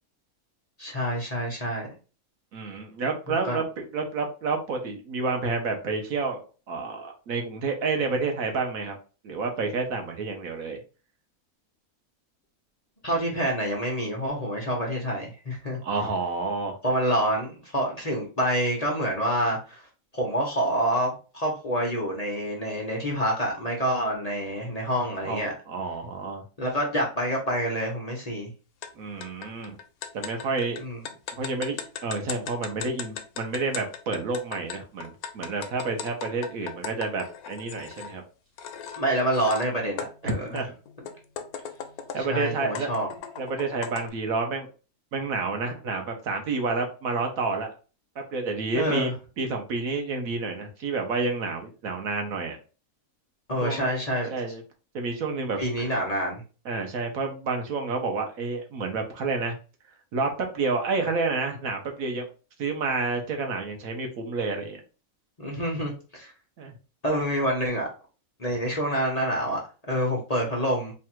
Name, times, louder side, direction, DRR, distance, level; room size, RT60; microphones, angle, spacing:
voice 1, 0.8-1.9 3.4-3.6 13.0-15.8 16.8-19.8 20.1-25.5 26.6-28.5 30.8-31.0 39.0-40.5 42.1-43.1 48.7-49.1 53.5-54.3 55.6-56.4 65.4-66.3 67.0-67.9 68.4-69.6 69.9-70.9, equal, 30° left, -2 dB, 0.9 m, -27 dB
voice 2, 2.5-9.0 9.2-10.8 15.8-16.8 25.2-26.4 29.0-29.8 30.1-30.8 31.4-38.2 40.2-40.7 42.1-42.9 43.4-44.7 45.1-47.7 48.3-49.1 49.4-52.6 53.6-54.0 54.3-54.6 54.9-55.6 56.6-59.5 60.1-62.3 62.6-64.8 66.6-66.7, right 3 dB, 70° right, 3 dB, 1.2 m, -29 dB
sound 1, 28.8-28.9 29.2-38.1 38.6-39.7 40.0-42.3 42.8-44.1, left 7 dB, 80° left, 1.1 m, -38 dB
3.3 x 2.5 x 4.3 m, 0.34 s
omnidirectional pair, 1.6 m